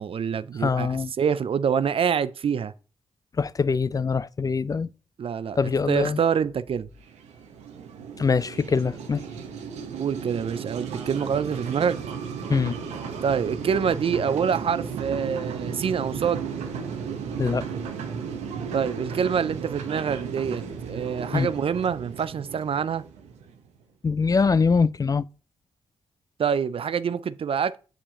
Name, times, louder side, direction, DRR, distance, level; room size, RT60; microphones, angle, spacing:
voice 1, 0.0-0.9 1.2-2.7 5.2-6.9 10.0-12.0 13.2-16.4 18.7-23.0 26.4-27.8, right 7 dB, 55° right, 0.5 m, -26 dB
voice 2, 0.6-1.1 3.4-4.9 5.5-6.2 8.2-9.2 12.5-12.8 17.4-17.7 21.3-21.5 24.0-25.3, left 5 dB, 35° left, 0.4 m, -23 dB
sound 1, 7.0-23.7, right 6 dB, 85° right, 0.9 m, -35 dB
6.9 x 5.0 x 3.7 m
supercardioid pair, 45°, 11 cm